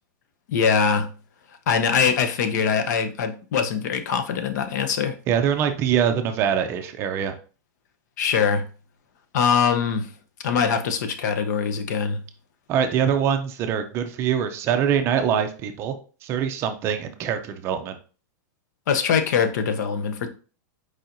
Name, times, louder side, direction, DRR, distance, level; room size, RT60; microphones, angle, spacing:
voice 1, 0.5-1.1 1.7-5.2 8.2-8.6 9.3-10.1 10.4-12.2 18.9-20.3, left 6 dB, 65° left, 0.7 m, -22 dB
voice 2, 5.3-7.3 12.7-15.9 16.2-18.0, right 8 dB, 25° right, 0.4 m, -23 dB
4.7 x 4.3 x 2.6 m
supercardioid pair, 165°, 10 cm